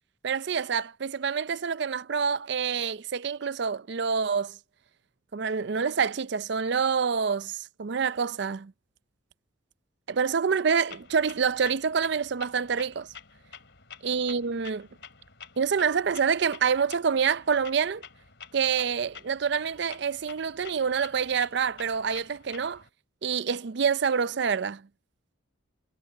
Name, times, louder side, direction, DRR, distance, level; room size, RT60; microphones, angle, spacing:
voice 1, 0.2-4.6 5.3-8.7 10.1-13.1 14.0-14.9 15.6-18.0 18.5-22.8 23.2-24.8, right 6 dB, 60° right, 0.5 m, -27 dB
Clock, 10.9-22.9, left 7 dB, 65° left, 3.5 m, -49 dB
head